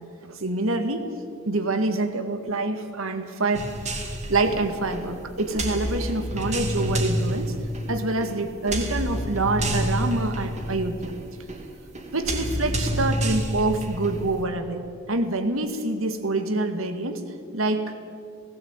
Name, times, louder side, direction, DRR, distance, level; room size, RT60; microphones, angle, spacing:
voice 1, 0.2-1.1 1.4-4.0 4.3-7.5 7.9-11.1 12.1-17.2 17.5-17.9, right 2 dB, 80° right, 8 dB, 1.8 m, -26 dB
sound 1, 3.5-14.4, equal, 35° right, 2.4 m, -29 dB
18.0 x 17.0 x 9.0 m, 2.4 s
head